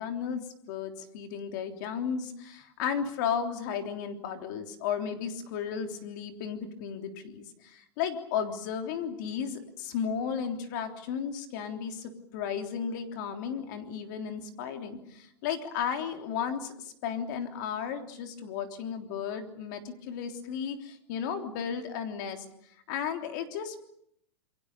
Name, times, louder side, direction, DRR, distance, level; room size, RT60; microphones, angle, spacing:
voice 1, 0.0-22.4 22.9-23.8, left 7 dB, 45° left, 6 dB, 3.4 m, -34 dB
28.0 x 23.0 x 6.8 m, 0.73 s
supercardioid pair, 165°, 14 cm